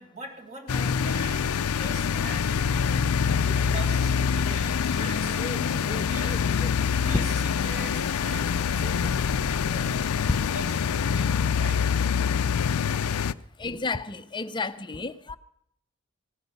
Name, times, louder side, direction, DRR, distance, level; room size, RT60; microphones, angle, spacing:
voice 1, 0.0-6.5 7.0-10.2 10.5-12.0, right 2 dB, 35° right, 1 dB, 2.2 m, -42 dB
speed boat outboard motor medium gear down and shut off, 0.7-13.3, left 6 dB, 85° left, 0.5 m, -25 dB
voice 2, 5.4-6.7 7.1-7.2 13.6-15.4, left 3 dB, 20° left, 12 dB, 0.6 m, -33 dB
17.5 x 12.5 x 5.3 m, 0.71 s
head